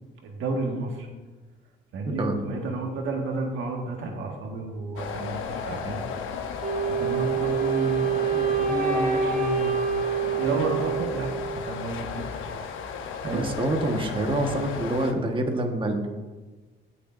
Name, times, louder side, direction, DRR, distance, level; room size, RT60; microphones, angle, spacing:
voice 1, 0.2-1.1 1.9-6.0 6.9-9.9 10.4-12.3 13.2-13.5, right 3 dB, 75° right, 1 dB, 1.7 m, -31 dB
voice 2, 2.1-2.4 13.3-16.1, right 1 dB, 25° right, 2 dB, 1.4 m, -26 dB
sound 1, 5.0-15.1, left 6 dB, 85° left, 1.0 m, -34 dB
Wind instrument woodwind instrument, 6.6-11.7, right 6 dB, 45° right, 1.8 m, -26 dB
17.0 x 6.8 x 2.6 m, 1.3 s
cardioid pair, 90°, 20 cm